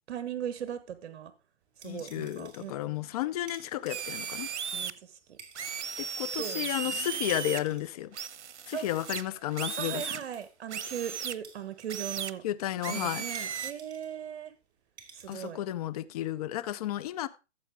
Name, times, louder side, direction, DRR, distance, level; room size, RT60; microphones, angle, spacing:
voice 1, 0.1-1.3 1.8-3.0 4.7-5.4 6.3-7.3 8.7-8.9 9.8-12.4 12.9-14.5 15.1-15.6, right 9 dB, 60° right, 1.3 m, -39 dB
sound 1, 1.6-15.5, right 6 dB, 30° right, 2.4 m, -54 dB
voice 2, 1.8-4.5 6.0-8.2 8.7-10.0 12.4-13.2 15.3-17.3, left 13 dB, 35° left, 0.6 m, -33 dB
sound 2, 3.9-4.9 5.6-7.6 8.1-10.2 10.7-11.4 11.9-12.3 12.8-13.7, right 8 dB, 80° right, 0.9 m, -36 dB
14.0 x 7.6 x 3.6 m
hypercardioid pair, 140°, 34 cm